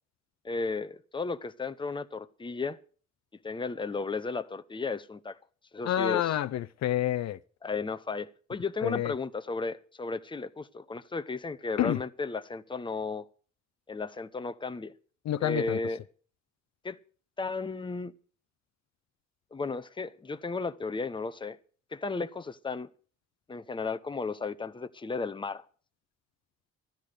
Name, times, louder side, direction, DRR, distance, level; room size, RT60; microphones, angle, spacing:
voice 1, 0.4-2.8 3.4-5.4 5.7-6.3 7.6-13.3 13.9-14.9 15.4-16.0 16.8-17.0 17.4-18.1 19.5-21.6 21.9-22.9 23.5-25.6, left 4 dB, 15° left, 0.8 m, -34 dB
voice 2, 5.8-7.4 8.8-9.1 11.8-12.0 15.3-15.8, left 12 dB, 65° left, 0.6 m, -28 dB
13.0 x 10.5 x 6.5 m
cardioid pair, 95°, 29 cm